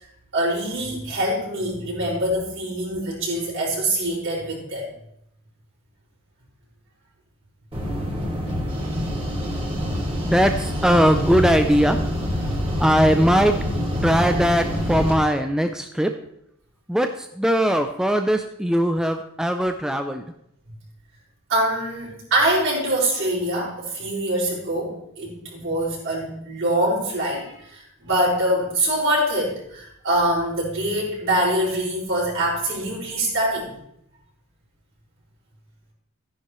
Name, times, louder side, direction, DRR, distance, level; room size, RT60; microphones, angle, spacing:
voice 1, 0.3-4.9 21.5-33.7, right 1 dB, 60° right, -5 dB, 5.4 m, -24 dB
sound 1, 7.7-15.2, equal, 25° right, 2.9 m, -26 dB
voice 2, 10.2-12.0 12.8-13.6 14.0-16.1 16.9-20.2, equal, 5° right, 6 dB, 0.4 m, -20 dB
14.0 x 10.5 x 3.1 m, 0.76 s
head